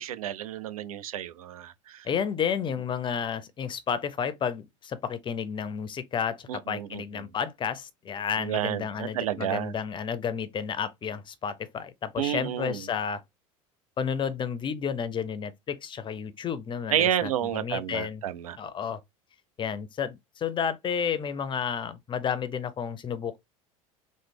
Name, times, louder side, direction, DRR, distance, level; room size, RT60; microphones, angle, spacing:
voice 1, 0.0-2.1 6.5-7.0 8.4-9.7 12.2-12.8 16.9-18.6, right 11 dB, 80° right, 0.4 m, -30 dB
voice 2, 2.0-13.2 14.0-18.2 18.6-19.0 19.6-23.4, left 7 dB, 25° left, 0.5 m, -31 dB
3.1 x 2.0 x 3.3 m
hypercardioid pair, 75°, 18 cm